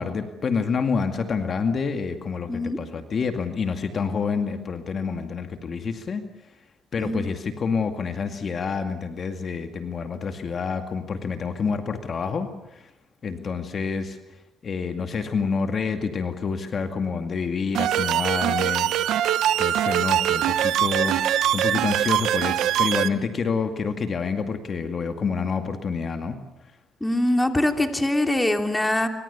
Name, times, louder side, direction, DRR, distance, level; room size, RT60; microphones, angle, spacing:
voice 1, 0.0-6.2 6.9-12.9 13.2-14.2 14.6-19.2 19.6-21.2 21.5-26.4, left 5 dB, 50° left, 6 dB, 2.2 m, -28 dB
sound 1, 17.7-23.1, right 11 dB, 85° right, 1.1 m, -22 dB
voice 2, 27.0-29.1, left 1 dB, 10° left, 5 dB, 3.0 m, -23 dB
26.0 x 25.0 x 7.0 m, 0.91 s
cardioid pair, 90°, 0 cm